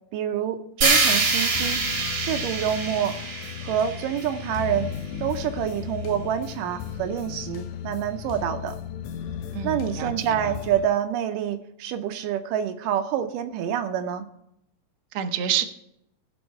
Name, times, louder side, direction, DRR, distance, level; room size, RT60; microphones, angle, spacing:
voice 1, 0.1-1.8 2.1-3.2 3.6-4.9 5.2-8.8 9.6-14.3, right 9 dB, 90° right, 7 dB, 2.4 m, -27 dB
sound 1, 0.8-4.9, right 3 dB, 40° right, 2.3 m, -25 dB
sound 2, 0.9-10.9, left 9 dB, 75° left, 1.8 m, -36 dB
voice 2, 9.5-10.5 15.1-15.6, right 10 dB, 65° right, 5 dB, 1.8 m, -28 dB
18.5 x 6.4 x 4.4 m, 0.79 s
omnidirectional pair, 3.7 m